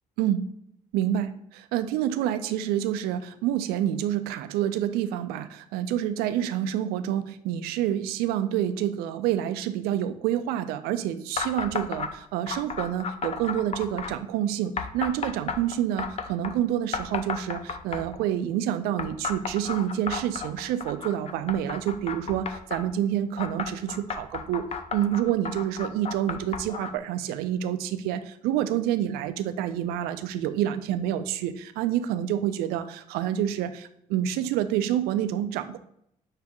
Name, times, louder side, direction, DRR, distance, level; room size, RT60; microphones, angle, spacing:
voice 1, 0.9-35.8, right 11 dB, 60° right, 11 dB, 0.4 m, -28 dB
sound 1, 11.4-12.1 12.5-14.1 14.8-16.5 16.9-18.2 19.0-22.8 23.4-27.0, left 6 dB, 35° left, 0.6 m, -33 dB
6.6 x 3.4 x 2.4 m, 0.73 s
figure-of-eight pair, 50°, 18 cm